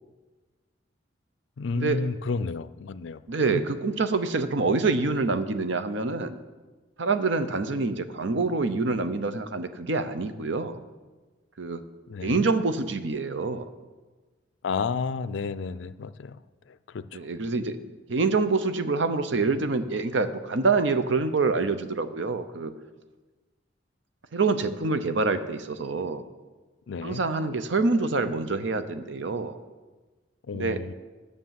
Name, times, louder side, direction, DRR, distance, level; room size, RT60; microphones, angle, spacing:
voice 1, 1.6-3.2 3.5-3.6 12.1-12.4 14.6-16.4 16.7-17.3 26.9-27.2 30.5-30.9, left 4 dB, 70° left, 15 dB, 0.4 m, -31 dB
voice 2, 3.3-6.4 7.0-10.8 11.6-11.8 12.2-13.6 17.1-17.8 18.1-22.7 24.3-26.2 27.0-29.6 30.5-30.8, right 3 dB, 70° right, 10 dB, 0.7 m, -26 dB
9.6 x 6.8 x 7.5 m, 1.3 s
head